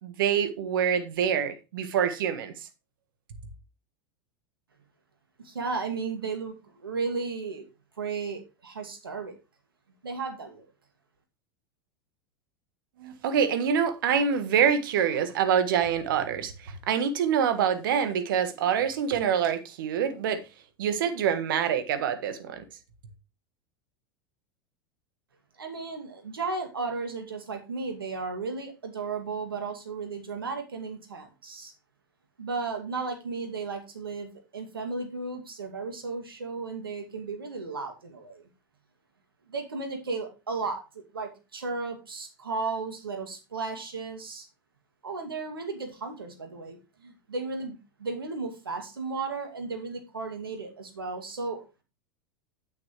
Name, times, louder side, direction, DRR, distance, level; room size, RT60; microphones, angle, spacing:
voice 1, 0.0-2.7 13.0-20.4 20.8-22.6, right 8 dB, 70° right, 1.5 m, -26 dB
voice 2, 5.4-7.6 8.0-9.4 10.0-10.7 25.6-31.7 32.4-38.4 39.5-44.5 45.0-51.8, right 4 dB, 90° right, 2.3 m, -34 dB
9.2 x 8.3 x 3.1 m
hypercardioid pair, 95°, 12 cm